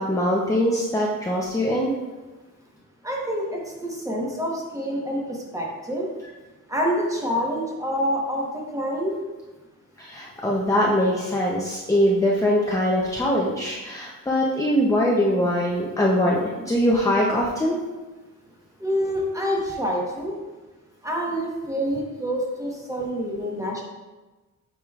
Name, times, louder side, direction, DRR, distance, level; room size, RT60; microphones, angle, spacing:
voice 1, 0.0-1.9 10.0-17.8, equal, 10° left, -3 dB, 0.6 m, -22 dB
voice 2, 3.0-6.1 6.7-9.2 18.8-20.4 21.0-23.8, equal, 10° right, -2 dB, 1.1 m, -27 dB
8.1 x 4.9 x 2.4 m, 1.2 s
wide cardioid pair, 130°, 33 cm